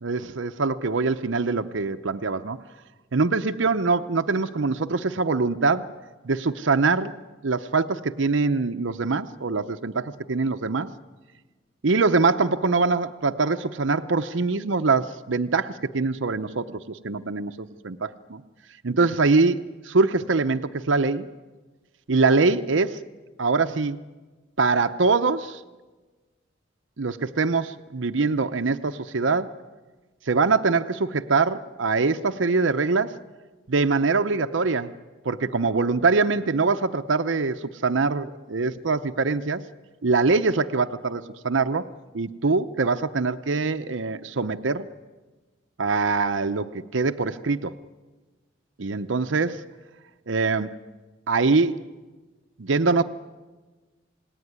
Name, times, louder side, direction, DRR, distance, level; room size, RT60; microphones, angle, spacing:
voice 1, 0.0-2.6 3.1-5.9 6.2-7.1 7.4-10.9 11.8-18.4 18.8-21.3 22.1-23.0 23.4-24.0 24.6-25.6 27.0-29.5 30.3-33.2 33.7-34.9 35.2-39.6 40.0-41.9 42.1-44.9 45.8-47.8 48.8-49.6 50.3-50.7 51.3-51.8 52.6-53.0, right 4 dB, 75° right, 10 dB, 0.8 m, -23 dB
28.0 x 19.0 x 9.5 m, 1.3 s
head